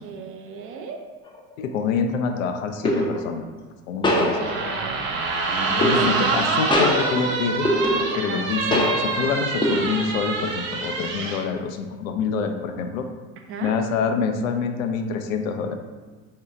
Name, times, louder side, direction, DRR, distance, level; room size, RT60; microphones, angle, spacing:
voice 1, 0.0-1.0 4.4-5.0 5.7-6.5 8.1-8.4 13.5-13.7, right 5 dB, 30° right, 3 dB, 0.5 m, -36 dB
sound 1, 1.3-1.5 2.8-3.3 4.0-4.9 5.8-6.4 6.7-8.4 8.7-9.3 9.6-10.2, left 1 dB, 10° left, 0.6 m, -23 dB
voice 2, 1.6-3.4 3.9-4.5 5.8-7.7 8.1-13.1 13.6-15.8, left 5 dB, 60° left, 6 dB, 0.6 m, -26 dB
sound 2, 4.4-11.4, right 3 dB, 60° right, 0.8 m, -26 dB
4.4 x 2.8 x 3.3 m, 1.4 s
figure-of-eight pair, 70°, 46 cm